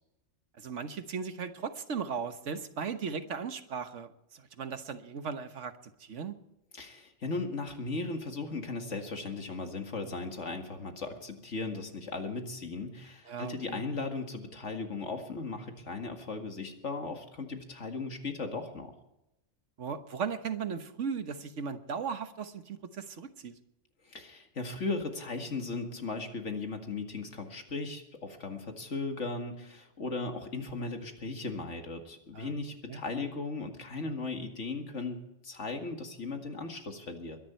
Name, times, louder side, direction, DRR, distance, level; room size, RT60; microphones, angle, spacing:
voice 1, 0.6-5.7 6.0-6.4 13.3-13.8 19.8-23.5 32.3-32.5 32.9-33.0, right 6 dB, 85° right, 9 dB, 1.5 m, -37 dB
voice 2, 6.7-18.9 24.0-37.4, left 3 dB, 90° left, 4 dB, 2.3 m, -37 dB
22.5 x 11.0 x 4.5 m, 0.88 s
omnidirectional pair, 1.2 m